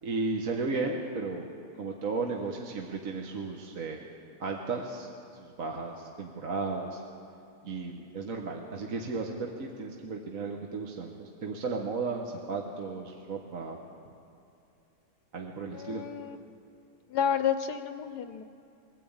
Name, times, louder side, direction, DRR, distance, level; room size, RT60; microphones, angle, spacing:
voice 1, 0.0-1.5 1.8-4.0 4.4-7.0 7.6-13.8 15.3-16.0, right 3 dB, 55° right, 1 dB, 1.6 m, -34 dB
voice 2, 15.7-16.4 17.1-18.4, left 8 dB, 75° left, 9 dB, 1.2 m, -30 dB
21.5 x 14.0 x 8.7 m, 2.6 s
omnidirectional pair, 1.8 m